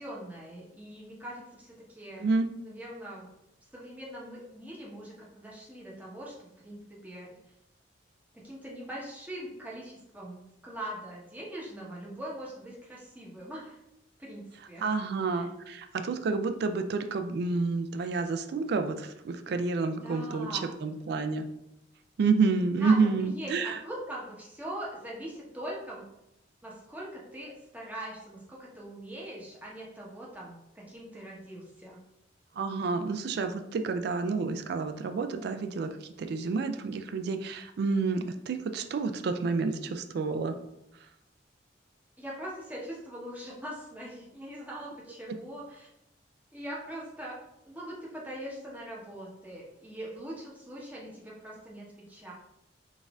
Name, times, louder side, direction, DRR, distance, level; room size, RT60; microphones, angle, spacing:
voice 1, 0.0-2.3 2.6-3.3 3.7-7.3 8.4-13.8 14.2-14.9 15.3-15.5 19.9-20.7 22.8-26.0 26.6-32.0 42.2-45.9 46.5-47.4 47.6-52.3, right 1 dB, 10° right, -5 dB, 0.9 m, -42 dB
voice 2, 14.8-21.4 22.2-23.8 32.6-35.9 36.2-40.5, right 4 dB, 60° right, 8 dB, 0.3 m, -29 dB
4.0 x 2.6 x 3.5 m, 0.85 s
head